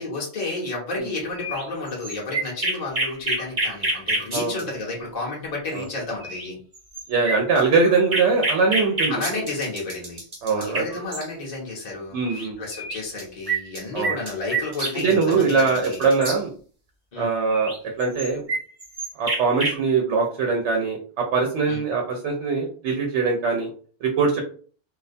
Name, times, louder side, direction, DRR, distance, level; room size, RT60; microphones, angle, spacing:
voice 1, 0.0-6.6 9.1-10.2 10.6-16.0 17.1-17.3 21.6-21.8, left 2 dB, 45° left, -3 dB, 0.7 m, -31 dB
sound 1, 1.4-4.6 5.9-6.0 6.2-6.5 6.7-11.2 12.2-12.5 12.7-16.4 17.5-19.8, right 2 dB, 35° right, 0.8 m, -27 dB
voice 2, 7.1-9.5 10.4-11.0 12.1-12.6 13.9-14.1 15.0-16.5 17.2-18.4 19.2-23.7 24.0-24.4, right 4 dB, 90° right, 1 dB, 0.9 m, -22 dB
2.3 x 2.1 x 2.5 m, 0.43 s
omnidirectional pair, 1.1 m